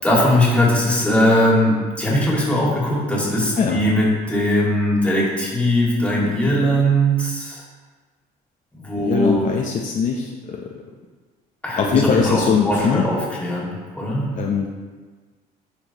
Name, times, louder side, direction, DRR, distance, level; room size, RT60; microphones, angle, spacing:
voice 1, 0.0-7.6 8.7-9.5 11.6-14.3, equal, 5° left, -5 dB, 2.2 m, -20 dB
voice 2, 9.0-10.7 11.8-13.0 14.3-14.7, left 6 dB, 50° left, 0 dB, 0.7 m, -21 dB
10.5 x 4.6 x 3.0 m, 1.4 s
cardioid pair, 110°, 17 cm